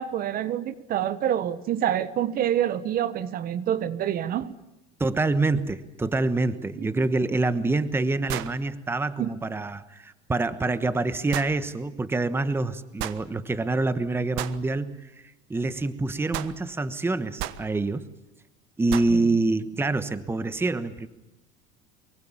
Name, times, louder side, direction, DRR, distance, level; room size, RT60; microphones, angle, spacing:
voice 1, 0.0-4.5 9.2-9.3 19.1-19.2, right 10 dB, 45° right, 16 dB, 1.3 m, -27 dB
voice 2, 5.0-15.2 15.5-18.1 18.8-21.1, right 3 dB, 10° right, 13 dB, 1.2 m, -26 dB
sound 1, 7.0-7.1 8.3-8.6 11.3-11.5 13.0-13.2 14.4-14.6 16.3-16.6 17.4-17.6 18.9-19.2, right 14 dB, 75° right, 1.4 m, -32 dB
24.0 x 23.0 x 7.3 m, 0.98 s
cardioid pair, 125°, 20 cm